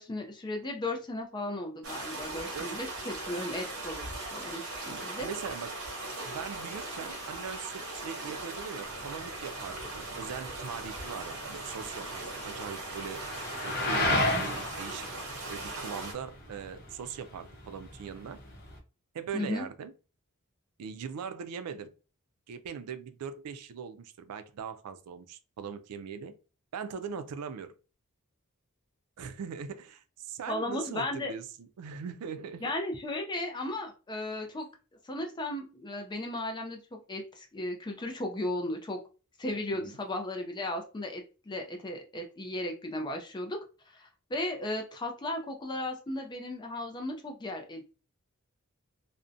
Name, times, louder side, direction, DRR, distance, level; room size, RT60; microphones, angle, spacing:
voice 1, 0.0-4.0 4.3-5.3 19.3-19.7 30.5-31.3 32.6-34.7 35.0-39.0 39.4-43.6 43.9-48.0, left 1 dB, 20° left, 0.4 m, -35 dB
sound 1, 1.8-16.1, right 2 dB, 65° right, 0.9 m, -39 dB
voice 2, 4.9-5.8 6.2-13.2 13.6-15.1 15.5-18.4 19.1-19.9 20.8-21.9 22.5-26.3 26.7-27.7 29.2-32.7 39.7-40.0, right 6 dB, 85° right, 0.4 m, -40 dB
sound 2, 8.9-18.8, left 1 dB, 45° left, 0.7 m, -35 dB
2.5 x 2.1 x 2.5 m
head